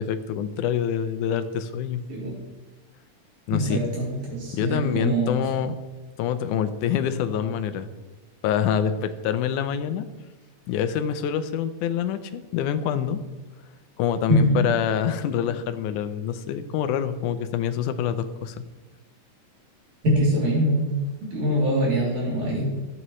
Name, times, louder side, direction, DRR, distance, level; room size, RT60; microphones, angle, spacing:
voice 1, 0.0-2.0 3.5-3.8 4.5-5.7 6.2-7.9 8.4-10.1 10.7-13.2 14.0-18.6, left 9 dB, 80° left, 11 dB, 2.1 m, -26 dB
voice 2, 3.5-5.4 14.3-14.6 20.0-22.6, equal, 60° right, -4 dB, 4.3 m, -23 dB
14.0 x 9.7 x 3.1 m, 1.2 s
omnidirectional pair, 3.7 m